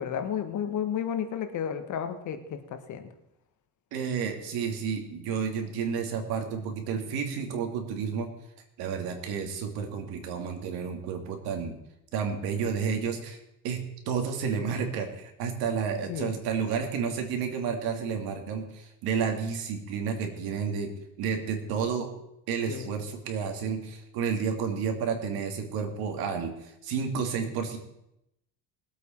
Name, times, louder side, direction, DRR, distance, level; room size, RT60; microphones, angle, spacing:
voice 1, 0.0-3.1 16.1-16.4 22.7-23.0, left 8 dB, 50° left, 8 dB, 1.5 m, -32 dB
voice 2, 3.9-8.3 8.8-11.8 12.1-13.4 13.6-13.8 14.1-20.9 21.2-22.1 22.5-26.5 26.8-27.8, right 6 dB, 70° right, 5 dB, 2.5 m, -31 dB
20.5 x 8.2 x 4.5 m, 0.83 s
cardioid pair, 140°, 38 cm